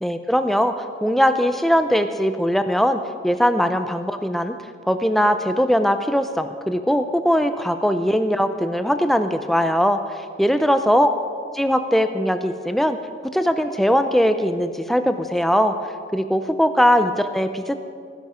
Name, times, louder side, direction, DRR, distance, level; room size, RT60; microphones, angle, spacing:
voice 1, 0.0-4.6 4.8-10.0 10.4-11.1 11.6-13.0 13.3-15.7 16.1-17.8, equal, ahead, 9 dB, 0.6 m, -20 dB
18.5 x 10.5 x 5.1 m, 2.2 s
head